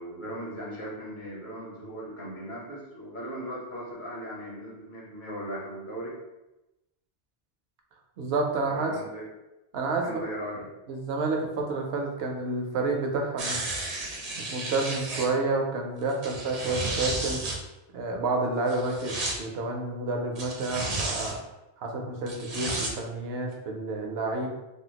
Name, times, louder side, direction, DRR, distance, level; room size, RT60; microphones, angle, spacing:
voice 1, 0.0-6.1 8.6-9.2 10.0-10.7, equal, 50° left, -5 dB, 1.0 m, -38 dB
voice 2, 8.2-8.9 9.7-10.2 10.9-13.6 14.4-17.4 17.9-21.4 21.8-24.5, right 3 dB, 70° right, 2 dB, 0.8 m, -29 dB
sound 1, 13.4-15.3 16.1-17.6 18.7-19.4 20.4-21.4 22.3-22.9 23.5-23.6, right 2 dB, 45° right, 0.6 m, -32 dB
3.4 x 2.3 x 2.8 m, 0.99 s
omnidirectional pair, 1.1 m